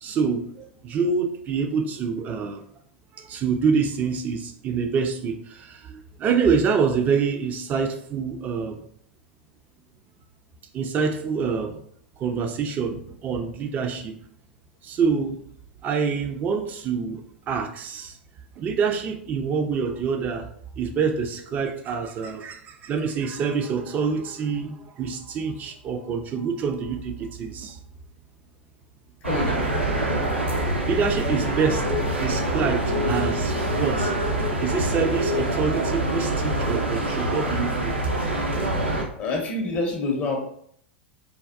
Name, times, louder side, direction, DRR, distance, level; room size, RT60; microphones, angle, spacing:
voice 1, 0.0-2.6 3.2-8.8 10.7-11.8 12.2-14.2 14.8-15.4 15.8-18.2 18.6-20.5 20.8-27.8 30.9-31.8 32.2-34.1 34.6-37.9, right 5 dB, 30° right, 7 dB, 0.4 m, -26 dB
voice 2, 29.2-29.6 39.2-40.4, left 3 dB, 35° left, 2 dB, 0.6 m, -26 dB
sound 1, 29.2-39.0, right 1 dB, 80° right, 0.6 m, -25 dB
3.4 x 2.2 x 2.4 m, 0.65 s
figure-of-eight pair, 90°, 6 cm